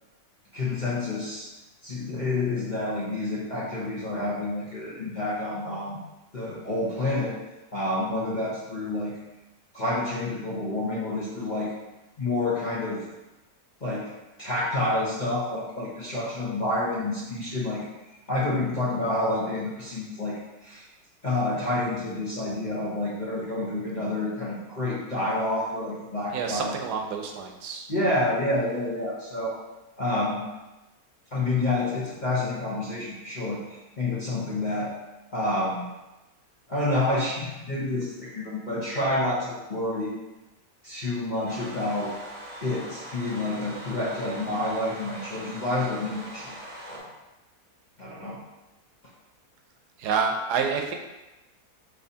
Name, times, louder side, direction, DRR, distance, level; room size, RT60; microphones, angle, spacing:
voice 1, 0.5-1.5 1.8-6.0 6.3-7.4 7.7-9.2 9.7-11.7 12.2-13.0 13.8-14.0 14.4-17.8 18.3-20.8 21.2-26.7 27.9-29.5 30.0-30.4 31.3-34.9 35.3-35.8 36.7-40.2 40.8-42.1 42.6-46.6 46.9-47.0 48.0-48.4, left 2 dB, 35° left, -7 dB, 0.8 m, -28 dB
voice 2, 26.3-27.9 50.0-51.0, right 6 dB, 80° right, 3 dB, 1.1 m, -28 dB
sound 1, 41.4-47.0, right 1 dB, 10° right, 0.8 m, -42 dB
5.5 x 3.2 x 2.7 m, 1.0 s
omnidirectional pair, 1.7 m